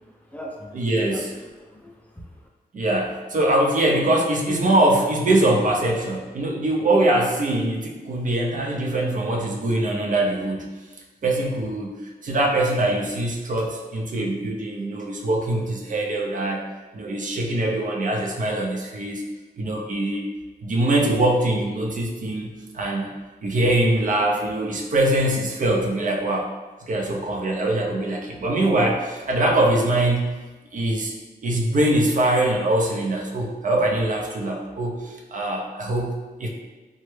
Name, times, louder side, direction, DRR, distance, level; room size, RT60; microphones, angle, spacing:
voice 1, 0.0-2.5, equal, 10° left, -3 dB, 0.4 m, -41 dB
voice 2, 0.7-1.3 2.7-10.7 11.2-12.0 12.2-19.2 19.6-20.2 20.6-22.5 22.7-23.1 23.4-26.5 26.9-30.4 30.7-31.1 31.4-36.5, right 1 dB, 50° right, 0 dB, 0.5 m, -23 dB
3.1 x 2.1 x 3.1 m, 1.2 s
wide cardioid pair, 100°, 17 cm